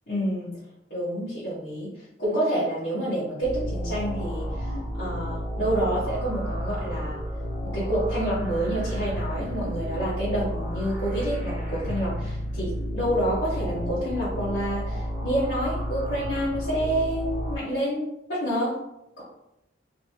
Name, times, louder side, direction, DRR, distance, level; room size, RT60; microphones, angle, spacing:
voice 1, 0.1-0.6 0.9-1.9 2.2-4.7 5.0-7.2 7.6-18.7, right 1 dB, 60° left, -12 dB, 1.4 m, -28 dB
sound 1, 3.4-17.6, equal, 15° right, 1.0 m, -31 dB
4.1 x 2.8 x 2.9 m, 0.86 s
head